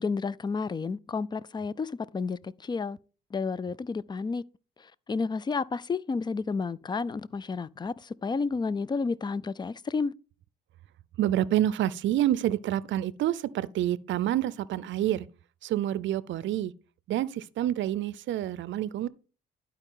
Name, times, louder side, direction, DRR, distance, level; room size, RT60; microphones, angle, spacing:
voice 1, 0.0-3.0 3.3-4.4 5.1-10.1, left 4 dB, 20° left, 0.4 m, -31 dB
voice 2, 11.2-15.3 15.6-16.7 17.1-19.1, right 12 dB, 70° right, 0.5 m, -28 dB
11.5 x 4.8 x 3.7 m
cardioid pair, 90°, 20 cm